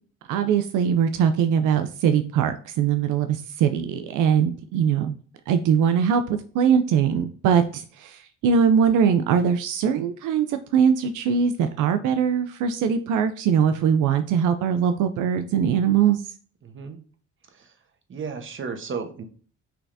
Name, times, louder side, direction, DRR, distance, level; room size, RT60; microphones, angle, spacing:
voice 1, 0.3-5.1 5.5-6.2 6.5-16.2, right 7 dB, 85° right, 9 dB, 0.5 m, -21 dB
voice 2, 16.6-17.0 17.5-17.7 18.1-19.2, right 5 dB, 40° right, 6 dB, 1.0 m, -34 dB
5.7 x 3.4 x 2.6 m, 0.42 s
cardioid pair, 90°, 30 cm